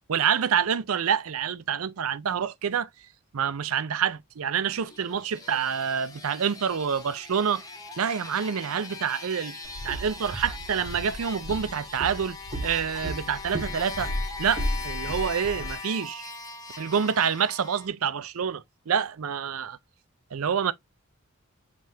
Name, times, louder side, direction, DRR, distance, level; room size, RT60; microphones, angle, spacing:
voice 1, 0.1-2.9 3.3-7.6 8.0-9.6 9.8-12.4 12.6-14.1 14.4-16.3 16.8-19.8 20.3-20.7, right 7 dB, 80° right, 0.5 m, -27 dB
sound 1, 4.6-17.9, left 4 dB, 15° left, 0.8 m, -40 dB
Walk footsteps, 9.6-15.8, equal, 40° right, 0.8 m, -34 dB
7.4 x 2.5 x 2.7 m
head